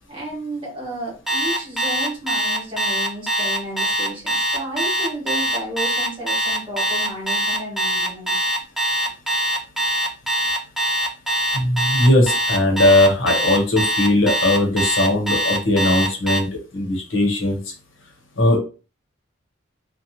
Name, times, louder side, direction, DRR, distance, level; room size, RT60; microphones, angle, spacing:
voice 1, 0.1-8.4, right 1 dB, 25° right, -4 dB, 1.3 m, -32 dB
Alarm, 1.3-16.4, right 1 dB, ahead, 0.4 m, -22 dB
voice 2, 11.5-16.5 16.7-17.6 18.4-18.6, left 1 dB, 75° left, 1 dB, 0.9 m, -18 dB
2.8 x 2.1 x 2.7 m, 0.35 s
head